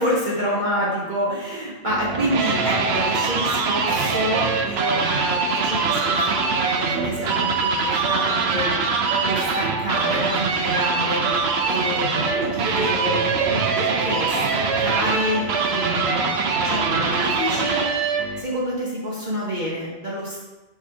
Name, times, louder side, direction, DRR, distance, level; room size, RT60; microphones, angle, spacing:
voice 1, 0.0-11.2 11.7-16.4 16.6-17.8 18.4-20.4, equal, 35° right, -6 dB, 1.5 m, -28 dB
sound 1, 1.9-18.4, right 4 dB, 55° right, 0.8 m, -23 dB
sound 2, 5.9-6.1 7.0-7.1 8.0-8.2 9.1-9.3 10.2-10.3 11.3-11.4 12.3-12.5 13.4-13.6, right 8 dB, 80° right, 1.2 m, -31 dB
6.3 x 3.3 x 4.8 m, 1.1 s
omnidirectional pair, 1.4 m